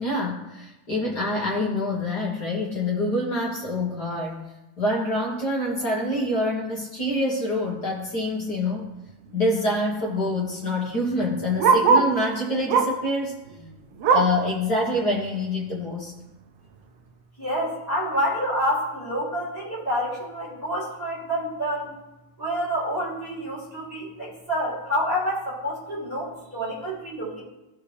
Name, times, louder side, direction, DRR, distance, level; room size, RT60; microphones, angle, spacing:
voice 1, 0.0-4.4 4.8-8.9 9.3-13.3 14.1-16.1, left 1 dB, 50° left, -3 dB, 1.2 m, -26 dB
Bark, 8.5-8.7 9.1-9.2 9.4-12.2 12.7-13.1 13.5-14.5 14.9-15.0 15.4-15.5 16.2-16.3, right 5 dB, 75° right, 1.5 m, -22 dB
voice 2, 17.4-21.9 22.4-27.4, equal, 10° right, -8 dB, 3.4 m, -28 dB
16.0 x 5.5 x 3.3 m, 1.0 s
omnidirectional pair, 3.7 m